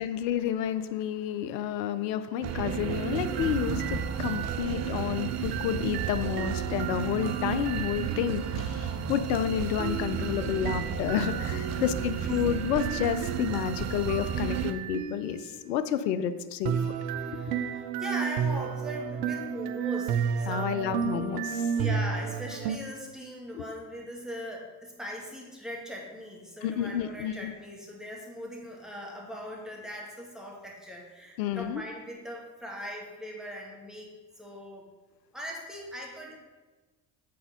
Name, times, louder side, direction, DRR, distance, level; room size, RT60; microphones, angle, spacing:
voice 1, 0.0-16.7 17.3-17.4 20.5-21.7 23.5-23.6 26.6-27.5 31.4-31.8, left 9 dB, 85° left, 12 dB, 0.6 m, -30 dB
sound 1, 2.4-14.7, right 8 dB, 35° right, 0.6 m, -32 dB
sound 2, 3.2-8.5 9.8-15.6 16.6-22.8, right 7 dB, 80° right, 0.7 m, -34 dB
voice 2, 11.1-11.9 17.0-21.1 21.8-34.1 34.4-34.9 35.3-36.4, equal, ahead, -2 dB, 2.0 m, -40 dB
7.8 x 4.3 x 5.1 m, 1.2 s
hypercardioid pair, 70°, 49 cm